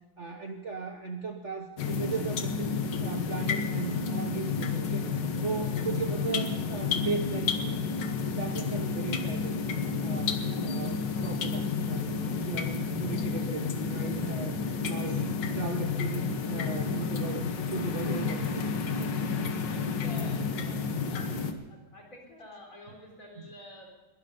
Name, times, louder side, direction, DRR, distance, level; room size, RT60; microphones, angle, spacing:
voice 1, 0.2-5.1 5.4-7.8 8.2-9.5 10.0-15.3 15.5-17.4 17.7-18.7 19.0-19.1, right 4 dB, 45° right, 5 dB, 1.1 m, -37 dB
sound 1, 1.8-21.5, left 5 dB, 65° left, 1.8 m, -31 dB
voice 2, 19.2-23.9, left 1 dB, 40° left, 0 dB, 4.5 m, -50 dB
21.5 x 12.5 x 5.4 m, 1.2 s
omnidirectional pair, 2.1 m